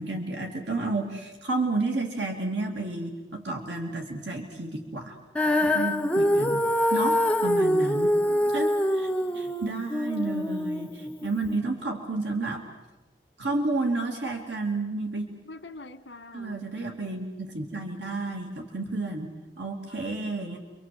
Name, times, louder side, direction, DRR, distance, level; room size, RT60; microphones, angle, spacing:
voice 1, 0.0-5.2 5.6-8.2 8.5-12.6 13.4-15.3 16.3-20.6, right 2 dB, 90° right, 2 dB, 2.7 m, -31 dB
Female singing, 5.3-11.6, left 1 dB, 5° left, 0.8 m, -25 dB
voice 2, 5.6-5.9 8.2-8.7 15.5-16.6 19.9-20.1, left 2 dB, 80° left, 8 dB, 1.6 m, -45 dB
30.0 x 25.0 x 7.8 m, 1.2 s
head